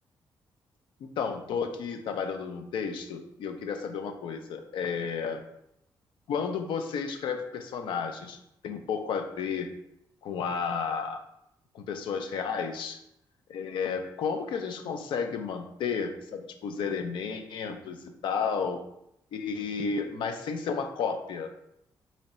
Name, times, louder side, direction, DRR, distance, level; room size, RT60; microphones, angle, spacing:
voice 1, 1.2-5.4 6.3-8.4 8.6-9.7 10.2-11.2 11.7-13.0 13.5-18.8 19.3-21.5, left 6 dB, 90° left, 6 dB, 0.5 m, -32 dB
3.0 x 2.7 x 4.1 m, 0.80 s
wide cardioid pair, 160°, 8 cm